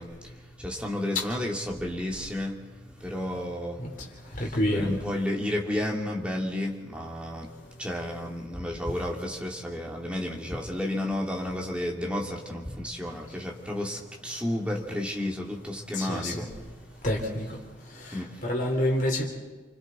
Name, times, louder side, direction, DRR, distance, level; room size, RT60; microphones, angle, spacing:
voice 1, 0.0-17.1 17.8-18.5, left 1 dB, 5° right, -1 dB, 2.5 m, -32 dB
voice 2, 4.3-5.0 15.9-16.4 17.0-17.6 17.9-19.3, left 1 dB, 45° left, 0 dB, 4.2 m, -28 dB
29.5 x 25.0 x 4.2 m, 1.3 s
head